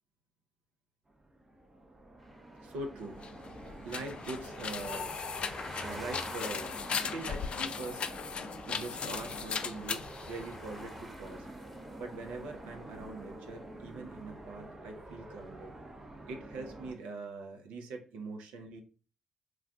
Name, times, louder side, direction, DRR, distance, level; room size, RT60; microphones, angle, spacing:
sound 1, 1.1-16.9, right 1 dB, 25° right, 0.5 m, -48 dB
sound 2, 2.2-14.3, equal, ahead, 1.1 m, -49 dB
voice 1, 2.6-3.2 3.8-5.1 5.8-8.0 8.7-10.0 10.3-11.5 12.0-15.7 16.3-18.8, right 3 dB, 75° right, 4 dB, 0.6 m, -43 dB
sound 3, 3.1-11.0, left 6 dB, 50° left, 0.3 m, -38 dB
2.3 x 2.2 x 3.7 m, 0.37 s
hypercardioid pair, 45°, 2 cm